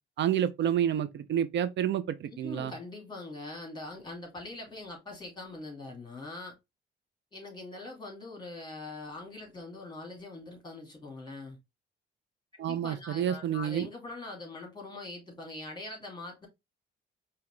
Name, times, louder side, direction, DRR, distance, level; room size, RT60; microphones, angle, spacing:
voice 1, 0.2-2.7 12.6-13.9, right 10 dB, 65° right, 0.6 m, -29 dB
voice 2, 2.3-6.6 7.3-11.6 12.5-16.5, left 2 dB, 20° left, 2.5 m, -43 dB
4.9 x 2.9 x 3.2 m
cardioid pair, 90°, 20 cm